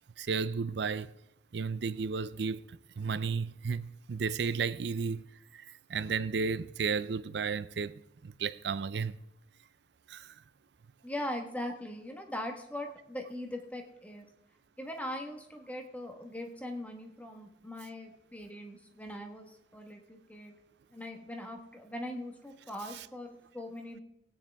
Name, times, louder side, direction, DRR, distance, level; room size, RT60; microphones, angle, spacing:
voice 1, 0.2-1.1 1.5-2.6 3.0-5.2 5.5-5.6 5.9-7.9 8.2-9.2 10.1-10.3, right 5 dB, 60° right, 0.5 m, -33 dB
voice 2, 11.0-14.3 14.8-20.5 20.9-24.0, left 1 dB, 10° left, 1.2 m, -41 dB
19.0 x 9.4 x 3.5 m
head